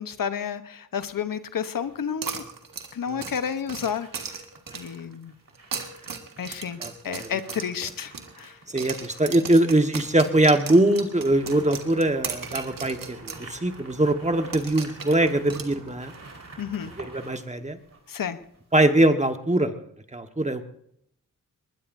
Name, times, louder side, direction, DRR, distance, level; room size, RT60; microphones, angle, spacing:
voice 1, 0.0-2.4 2.9-4.1 4.7-5.3 6.4-8.6 16.6-16.9 18.1-18.4, left 7 dB, 85° left, 10 dB, 1.0 m, -31 dB
sound 1, 1.2-2.0 3.2-18.7 19.1-19.2, right 2 dB, 50° right, 4.6 m, -50 dB
sound 2, 2.2-5.0 5.6-8.5 8.8-13.5 13.7-13.8 14.5-16.2, right 5 dB, 85° right, 1.8 m, -37 dB
voice 2, 6.8-7.3 8.7-16.1 17.0-17.8 18.7-19.8 20.1-20.7, right 1 dB, 20° right, 7 dB, 1.5 m, -22 dB
sound 3, 11.2-17.1, right 3 dB, 65° right, 4.8 m, -48 dB
20.5 x 20.5 x 2.7 m, 0.70 s
wide cardioid pair, 80°, 33 cm